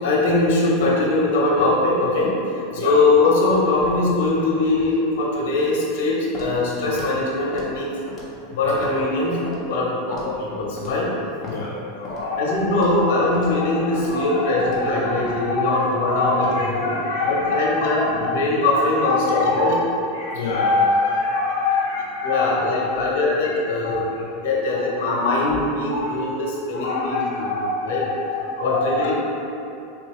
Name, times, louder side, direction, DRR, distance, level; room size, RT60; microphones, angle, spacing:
voice 1, 0.0-2.4 2.7-7.9 8.6-11.2 12.4-16.9 17.2-19.7 22.2-24.0 24.3-27.5 27.8-28.0 28.6-29.1, left 2 dB, 70° left, -4 dB, 0.9 m, -21 dB
Walk footsteps, 6.3-6.5 6.9-7.1 7.5-7.7 8.1-8.4 8.8-8.9 9.5-9.6 10.1-10.3 10.8-11.0 11.4-11.6 12.0-12.2 12.7-12.9 13.3-13.5 13.9-14.1 14.6-14.8 15.2-15.4, left 2 dB, 25° left, 0.8 m, -36 dB
voice 2, 12.0-18.4 18.7-19.8 20.1-23.2 23.8-24.3 24.7-24.8 25.3-25.4 25.9-26.2 26.7-29.1, left 3 dB, 90° left, -6 dB, 0.4 m, -25 dB
3.7 x 2.6 x 3.1 m, 2.8 s
supercardioid pair, 135°, 0 cm